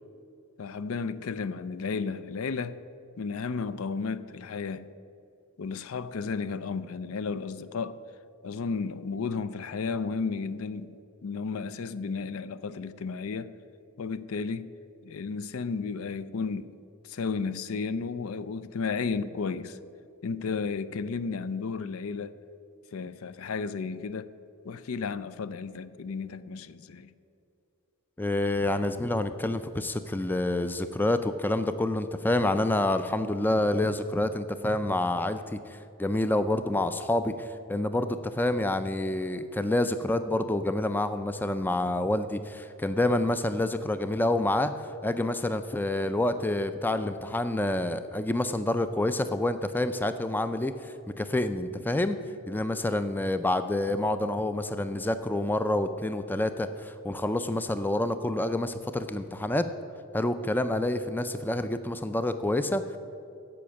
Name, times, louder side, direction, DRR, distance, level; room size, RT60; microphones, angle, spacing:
voice 1, 0.6-2.8 3.2-4.9 5.6-8.0 8.4-13.5 14.0-14.7 15.0-16.7 17.1-19.8 20.2-22.3 22.9-24.3 24.6-27.1, left 5 dB, 75° left, 0.5 m, -33 dB
voice 2, 28.2-44.7 45.0-52.2 52.5-59.7 60.1-63.0, left 1 dB, 10° left, 0.3 m, -28 dB
15.5 x 5.8 x 6.3 m
head